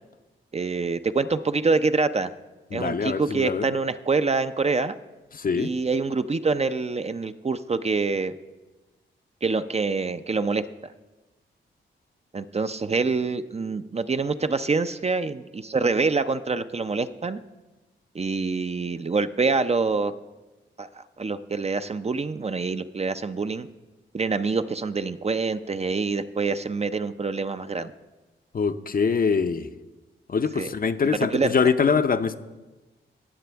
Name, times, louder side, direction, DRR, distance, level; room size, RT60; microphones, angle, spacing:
voice 1, 0.5-2.3 2.7-5.0 5.6-8.3 9.4-10.6 12.3-17.4 18.1-20.1 20.8-23.7 24.1-27.9 30.6-30.7 31.3-31.5, right 4 dB, 30° right, 10 dB, 0.5 m, -26 dB
voice 2, 2.7-3.7 5.3-5.7 28.5-29.7 30.3-32.4, left 5 dB, 45° left, 10 dB, 0.6 m, -23 dB
18.5 x 6.7 x 3.4 m, 1.1 s
cardioid pair, 50°, 21 cm